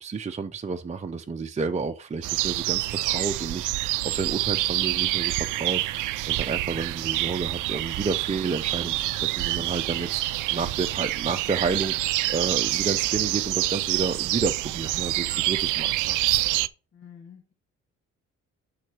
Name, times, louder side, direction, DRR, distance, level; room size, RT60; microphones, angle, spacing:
voice 1, 0.0-16.2, right 4 dB, 25° right, 0.6 m, -31 dB
sound 1, 2.2-16.7, right 17 dB, 90° right, 0.5 m, -27 dB
voice 2, 16.9-17.5, left 8 dB, 65° left, 3.1 m, -49 dB
6.3 x 5.7 x 6.1 m
cardioid pair, 90°, 30 cm